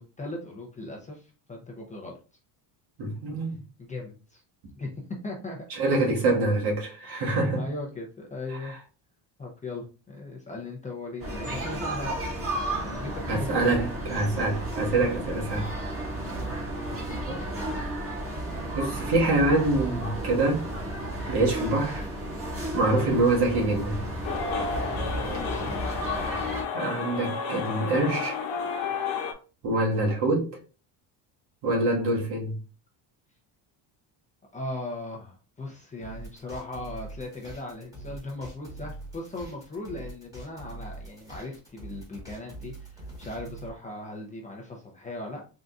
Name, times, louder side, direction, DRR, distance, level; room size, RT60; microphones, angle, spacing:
voice 1, 0.0-2.1 3.8-4.4 4.8-5.9 7.1-8.8 9.4-12.2 12.6-13.8 16.1-17.3 25.1-25.8 34.5-45.5, left 2 dB, 15° left, 0.5 m, -38 dB
voice 2, 3.0-3.6 5.7-7.6 8.6-8.8 13.3-15.7 17.2-17.4 18.7-20.7 21.3-22.0 22.7-24.0 26.7-28.4 29.6-30.5 31.6-32.6, right 2 dB, 60° right, 1.6 m, -25 dB
sound 1, 11.2-26.6, right 1 dB, 30° right, 1.5 m, -33 dB
sound 2, 24.2-29.3, left 5 dB, 80° left, 1.1 m, -31 dB
sound 3, 36.0-43.7, right 2 dB, 10° right, 1.3 m, -43 dB
3.9 x 3.8 x 2.3 m
cardioid pair, 155°, 45 cm